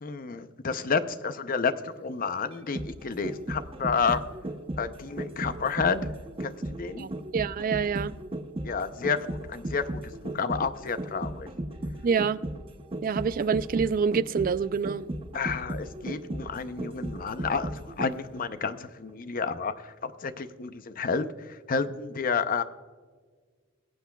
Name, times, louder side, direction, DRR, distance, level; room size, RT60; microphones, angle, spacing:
voice 1, 0.0-4.2 4.8-6.1 6.4-7.1 8.6-11.5 15.3-22.6, left 5 dB, 40° left, 0.6 m, -30 dB
sound 1, 2.5-18.4 18.7-18.8, right 1 dB, 25° right, 0.7 m, -35 dB
voice 2, 7.0-8.1 12.0-12.4 13.0-15.0, right 6 dB, 40° right, 0.3 m, -26 dB
21.5 x 8.1 x 2.3 m
head